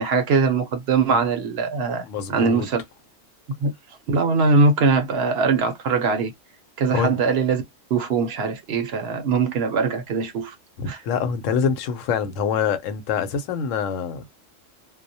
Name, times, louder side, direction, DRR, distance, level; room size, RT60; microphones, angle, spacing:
voice 1, 0.0-2.8 3.6-3.7 4.1-6.3 6.8-7.6 7.9-10.5 10.9-11.0, right 4 dB, 65° right, 0.8 m, -21 dB
voice 2, 2.0-2.7 6.9-7.2 10.8-14.2, left 7 dB, 85° left, 1.0 m, -25 dB
2.3 x 2.0 x 2.6 m
omnidirectional pair, 1.3 m